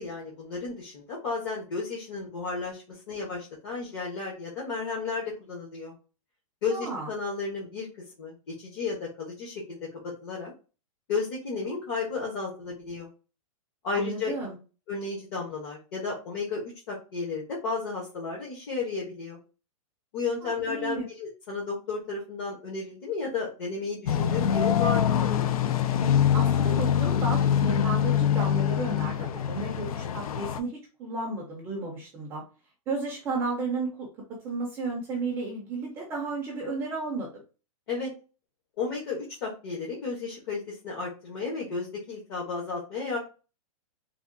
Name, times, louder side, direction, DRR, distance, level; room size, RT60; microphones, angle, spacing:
voice 1, 0.0-5.9 6.6-7.9 8.2-9.8 10.0-10.5 11.1-13.1 13.8-14.3 14.9-19.4 20.1-25.2 37.9-38.1 38.8-43.2, left 4 dB, 45° left, -3 dB, 0.9 m, -33 dB
voice 2, 6.7-7.1 13.9-14.6 20.4-21.0 26.3-32.4 32.9-34.1 34.4-37.4, right 3 dB, 10° right, -2 dB, 0.4 m, -33 dB
sound 1, 24.1-30.6, left 9 dB, 90° left, 0.4 m, -24 dB
3.5 x 2.2 x 2.5 m, 0.33 s
supercardioid pair, 170°, 18 cm